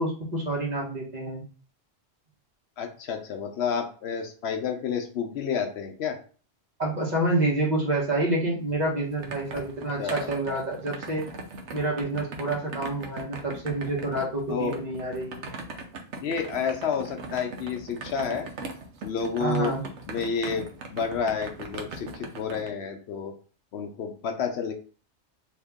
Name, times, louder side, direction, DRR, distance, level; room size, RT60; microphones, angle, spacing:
voice 1, 0.0-1.4 6.8-11.3 11.7-15.5 19.4-19.8, right 2 dB, 40° right, -2 dB, 1.1 m, -28 dB
voice 2, 2.8-6.2 9.5-9.6 10.0-10.3 14.5-14.8 16.2-18.5 19.0-19.7 20.1-23.3 23.7-24.7, left 6 dB, 70° left, 5 dB, 0.8 m, -30 dB
sound 1, 8.7-22.7, right 3 dB, 85° right, 1.0 m, -40 dB
2.8 x 2.8 x 3.5 m, 0.39 s
omnidirectional pair, 1.2 m